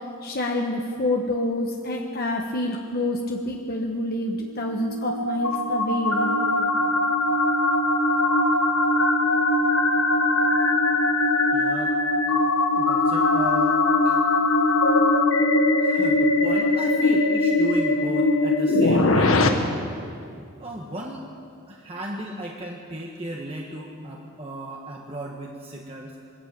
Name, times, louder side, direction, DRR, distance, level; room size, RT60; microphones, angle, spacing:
voice 1, 0.2-6.3, left 1 dB, 50° left, 0 dB, 1.4 m, -27 dB
sound 1, 4.4-19.5, left 2 dB, 85° left, 1.7 m, -21 dB
voice 2, 11.5-12.0 12.7-14.2 15.8-19.4 20.6-21.3 21.7-26.1, right 1 dB, 30° right, -1 dB, 1.6 m, -35 dB
21.5 x 14.0 x 8.8 m, 2.4 s
head